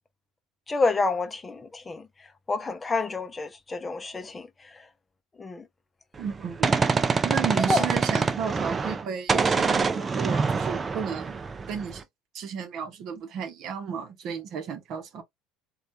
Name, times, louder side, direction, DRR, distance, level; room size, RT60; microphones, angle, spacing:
voice 1, 0.7-2.0 2.5-4.5 4.7-4.8 5.4-5.6 7.1-7.2 7.7-7.9, left 3 dB, 20° left, 0.5 m, -28 dB
Gunshot gunfire, 6.2-9.0 9.3-12.0, right 4 dB, 30° right, 0.4 m, -25 dB
voice 2, 6.2-6.8 7.2-12.0 12.3-15.2, right 7 dB, 55° right, 0.8 m, -33 dB
3.2 x 2.3 x 2.5 m
hypercardioid pair, 70°, 0 cm